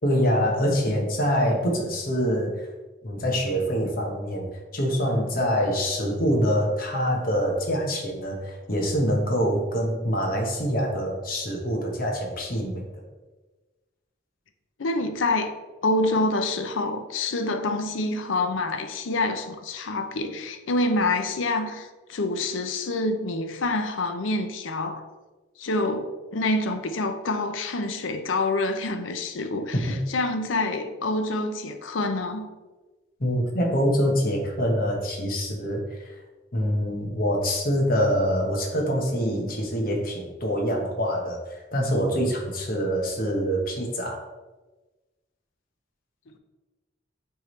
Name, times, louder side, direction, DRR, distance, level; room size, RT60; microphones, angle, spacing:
voice 1, 0.0-2.7 3.0-12.9 29.7-30.0 33.2-36.1 36.5-44.2, equal, 45° left, 1.2 m, -25 dB
voice 2, 14.8-15.6 15.8-25.0 25.6-29.7 30.1-32.5, left 2 dB, 85° left, 0.6 m, -27 dB
9.3 x 3.6 x 3.2 m
head